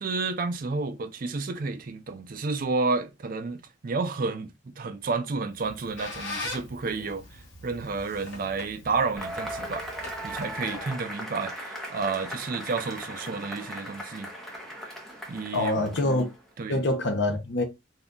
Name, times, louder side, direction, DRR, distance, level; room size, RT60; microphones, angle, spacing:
voice 1, 0.0-9.9 10.2-14.3 15.3-16.1 16.6-16.8, right 4 dB, 45° right, 0.4 m, -31 dB
Squeak, 5.5-10.9, left 2 dB, 75° left, 1.1 m, -41 dB
Cheering / Applause / Crowd, 9.2-16.4, equal, ahead, 0.6 m, -38 dB
voice 2, 15.5-16.3 16.7-17.6, left 2 dB, 55° left, 0.7 m, -25 dB
2.7 x 2.3 x 3.6 m
head